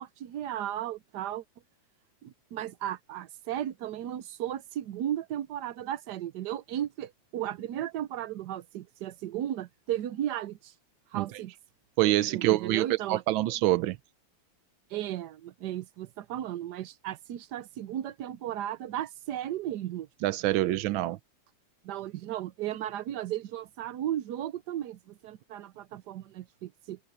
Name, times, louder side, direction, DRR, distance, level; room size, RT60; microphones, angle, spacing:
voice 1, 0.0-1.4 2.2-10.7 11.1-11.5 12.3-13.2 14.9-20.1 21.8-27.0, right 11 dB, 65° right, 1.2 m, -35 dB
voice 2, 12.0-14.0 20.2-21.2, right 16 dB, 90° right, 1.4 m, -26 dB
open air
omnidirectional pair, 2.1 m